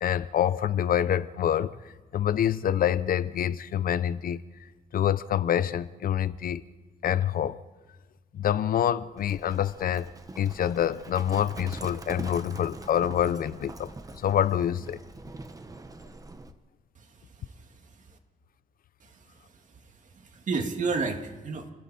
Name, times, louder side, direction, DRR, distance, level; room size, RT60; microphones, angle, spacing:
voice 1, 0.0-1.7 2.1-4.4 4.9-6.6 7.0-7.6 8.3-10.1 10.4-15.0, left 10 dB, 75° left, 0.7 m, -26 dB
Livestock farm animals working animals, 9.2-16.5, right 2 dB, 25° right, 1.1 m, -43 dB
voice 2, 16.9-18.2 19.0-21.7, right 4 dB, 60° right, 2.3 m, -34 dB
29.5 x 21.0 x 4.3 m
wide cardioid pair, 130°, 15 cm